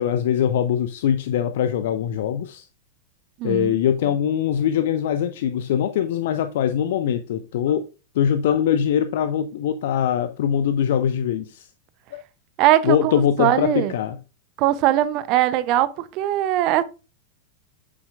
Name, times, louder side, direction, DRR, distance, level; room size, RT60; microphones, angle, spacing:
voice 1, 0.0-2.7 3.4-7.9 8.1-11.7 12.8-14.2, left 9 dB, 55° left, 0.5 m, -22 dB
voice 2, 3.4-3.7 12.6-13.9 14.6-16.8, right 13 dB, 40° right, 0.7 m, -20 dB
8.5 x 7.2 x 2.5 m
figure-of-eight pair, 90°, 0 cm